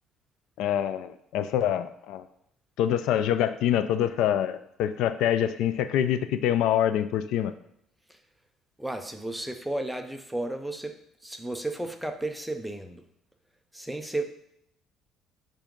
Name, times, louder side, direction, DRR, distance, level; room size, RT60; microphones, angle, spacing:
voice 1, 0.6-2.2 2.8-7.5, left 10 dB, 70° left, 12 dB, 0.3 m, -25 dB
voice 2, 8.8-11.0 11.2-13.0 13.7-14.2, right 2 dB, ahead, 5 dB, 0.5 m, -33 dB
7.4 x 2.6 x 5.1 m, 0.74 s
cardioid pair, 155°, 0 cm